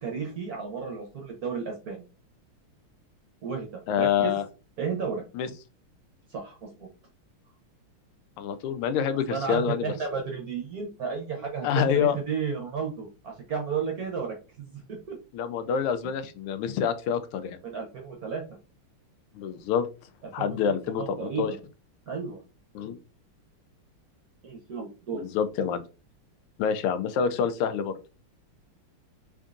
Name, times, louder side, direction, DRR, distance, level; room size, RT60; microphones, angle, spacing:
voice 1, 0.0-2.0 3.4-3.7 3.9-4.3 4.8-5.2 6.3-6.9 9.3-15.2 17.6-18.4 20.4-20.6 21.0-21.6 22.1-22.4 24.4-25.2, right 6 dB, 60° right, 1 dB, 1.0 m, -33 dB
voice 2, 3.9-4.4 5.3-5.5 8.4-9.9 11.6-12.2 15.3-17.6 19.3-19.9 20.3-21.5 22.7-23.0 25.1-25.8 26.6-27.9, left 8 dB, 90° left, 11 dB, 1.5 m, -27 dB
3.9 x 3.5 x 2.4 m, 0.32 s
omnidirectional pair, 2.4 m